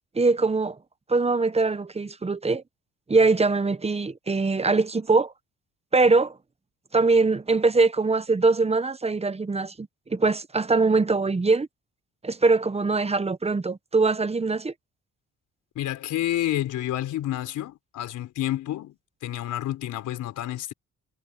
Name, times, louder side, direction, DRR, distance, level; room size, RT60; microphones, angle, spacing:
voice 1, 0.1-0.8 1.1-2.6 3.1-5.3 5.9-6.3 6.9-11.7 12.2-14.7, right 3 dB, 20° right, 1.1 m, -22 dB
voice 2, 15.8-20.7, left 13 dB, 80° left, 4.0 m, -29 dB
cardioid pair, 90°, 30 cm